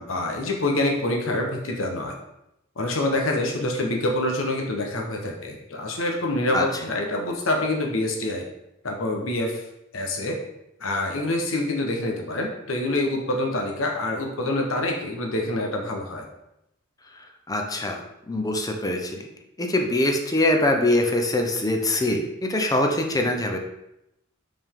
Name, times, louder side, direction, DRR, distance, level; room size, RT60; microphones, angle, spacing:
voice 1, 0.0-2.1 2.8-8.4 8.8-9.6 9.9-10.4 10.8-16.3, left 1 dB, 80° left, 1 dB, 1.1 m, -26 dB
voice 2, 17.5-19.3 19.6-23.6, left 1 dB, 20° left, 3 dB, 0.7 m, -23 dB
5.3 x 5.1 x 3.7 m, 0.84 s
head